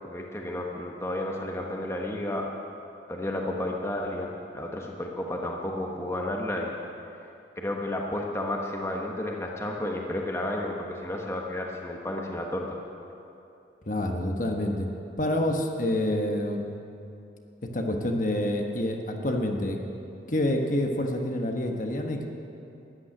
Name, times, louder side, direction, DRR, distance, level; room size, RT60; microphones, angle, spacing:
voice 1, 0.0-2.5 3.1-6.7 7.6-12.8, left 1 dB, 15° left, 0 dB, 1.2 m, -32 dB
voice 2, 13.9-14.9 15.2-16.7 17.7-19.8 20.3-22.2, left 1 dB, 45° left, 3 dB, 1.3 m, -27 dB
14.0 x 9.7 x 9.9 m, 2.7 s
head